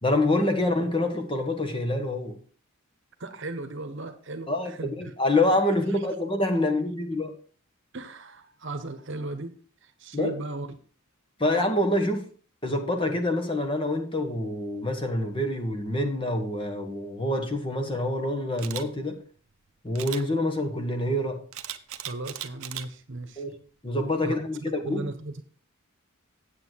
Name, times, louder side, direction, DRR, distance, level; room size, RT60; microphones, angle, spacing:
voice 1, 0.0-2.4 4.5-7.3 10.1-10.3 11.4-12.3 12.6-19.2 19.8-21.4 23.4-23.6 23.8-25.1, left 1 dB, 25° left, 1.3 m, -26 dB
voice 2, 3.2-5.1 7.9-9.5 9.8-10.8 22.0-23.4 24.2-25.4, right 2 dB, 55° right, 1.1 m, -36 dB
Camera, 18.6-18.8 20.0-20.2 21.5-22.9 23.4-23.6, right 12 dB, 75° right, 0.8 m, -37 dB
8.6 x 8.1 x 4.5 m
head